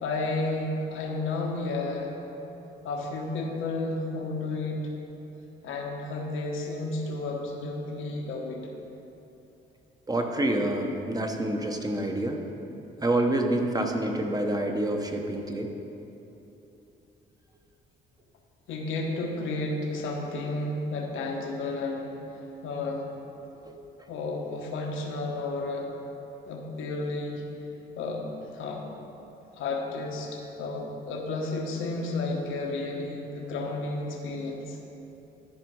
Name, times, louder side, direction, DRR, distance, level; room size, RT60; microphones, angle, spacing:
voice 1, 0.0-2.1 2.8-4.9 5.6-8.6 18.7-22.1 22.6-23.1 24.1-25.9 26.5-27.4 28.0-28.2 28.5-28.8 29.6-34.8, left 2 dB, 85° left, 0 dB, 1.3 m, -32 dB
voice 2, 10.1-12.4 13.0-15.7 23.6-23.8, right 1 dB, 20° right, 3 dB, 1.0 m, -27 dB
12.5 x 5.0 x 4.7 m, 3.0 s
cardioid pair, 90°, 20 cm